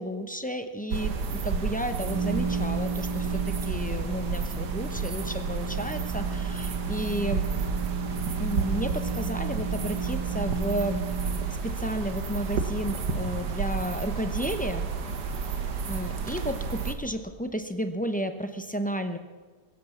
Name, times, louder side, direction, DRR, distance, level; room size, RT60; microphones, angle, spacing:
voice 1, 0.0-7.4 8.4-11.0 11.6-14.9 15.9-19.2, equal, 10° left, 7 dB, 0.4 m, -32 dB
sound 1, 0.9-16.9, right 5 dB, 85° right, 1.8 m, -31 dB
sound 2, 1.7-11.6, right 4 dB, 15° right, 4.8 m, -35 dB
22.0 x 8.7 x 7.1 m, 1.5 s
omnidirectional pair, 1.7 m